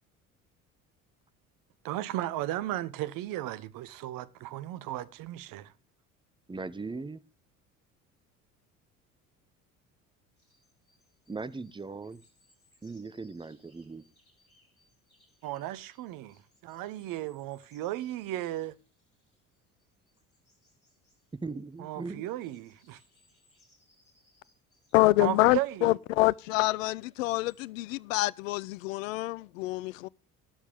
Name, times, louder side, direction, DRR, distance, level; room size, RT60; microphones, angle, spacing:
voice 1, 1.8-5.7 15.4-18.7 21.8-23.0 25.2-26.0, right 14 dB, 55° right, 1.0 m, -35 dB
voice 2, 6.5-7.2 11.3-12.2 12.8-14.0 21.4-22.3, right 3 dB, 10° right, 1.0 m, -39 dB
sound 1, 10.4-25.5 25.8-27.6, left 2 dB, 85° left, 6.2 m, -68 dB
voice 3, 24.9-30.1, left 19 dB, 70° left, 0.5 m, -26 dB
19.5 x 7.3 x 3.5 m
figure-of-eight pair, 60°, 41 cm